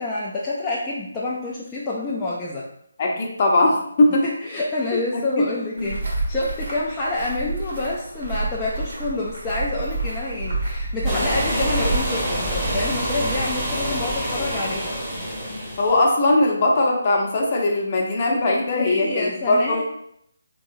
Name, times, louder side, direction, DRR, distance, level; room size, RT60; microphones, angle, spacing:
voice 1, 0.0-2.7 4.2-15.0 15.3-15.4 18.7-19.8, left 2 dB, 15° left, -6 dB, 0.4 m, -28 dB
voice 2, 3.0-4.3 5.1-5.9 15.8-19.8, left 2 dB, 35° left, 0 dB, 0.7 m, -20 dB
sound 1, 5.8-12.0, right 2 dB, 70° right, 1.4 m, -28 dB
sound 2, 11.0-16.1, equal, 15° right, 0.8 m, -26 dB
3.5 x 3.0 x 2.6 m, 0.72 s
figure-of-eight pair, 155°, 0 cm